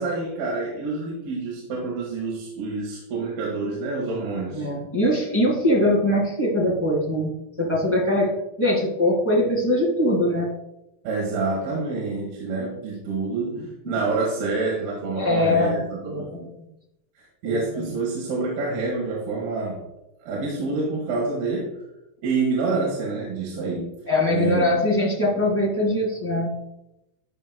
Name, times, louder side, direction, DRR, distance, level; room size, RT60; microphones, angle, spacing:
voice 1, 0.0-4.7 11.0-16.3 17.2-19.8 20.2-21.8 22.2-23.9 24.3-24.7, right 3 dB, 70° right, -4 dB, 3.6 m, -27 dB
voice 2, 4.5-7.3 7.6-8.3 8.6-10.5 13.8-14.0 15.1-15.7 16.0-16.5 17.4-17.9 24.1-26.5, left 1 dB, 25° left, -4 dB, 0.6 m, -22 dB
14.0 x 5.6 x 2.3 m, 0.88 s
omnidirectional pair, 4.7 m